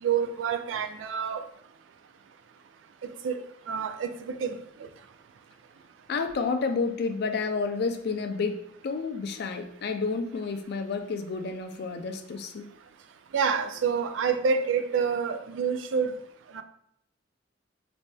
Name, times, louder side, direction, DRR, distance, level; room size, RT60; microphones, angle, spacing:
voice 1, 0.0-1.4 3.2-3.3 3.7-4.6 13.3-16.1 16.5-16.6, right 6 dB, 80° right, 9 dB, 0.3 m, -27 dB
voice 2, 6.1-12.7, left 4 dB, 60° left, 7 dB, 0.4 m, -30 dB
4.2 x 2.6 x 2.2 m, 0.73 s
head